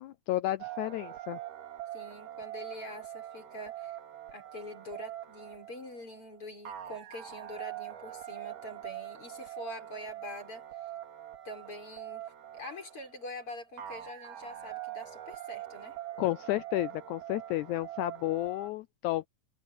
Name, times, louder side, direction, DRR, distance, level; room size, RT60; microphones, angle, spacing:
voice 1, 0.0-1.4 16.2-19.3, left 16 dB, 80° left, 1.8 m, -32 dB
sound 1, 0.6-18.7, right 12 dB, 75° right, 3.8 m, -44 dB
voice 2, 1.9-4.0 4.3-10.9 11.4-12.2 12.5-16.0, left 1 dB, 40° left, 6.4 m, -44 dB
omnidirectional pair, 3.8 m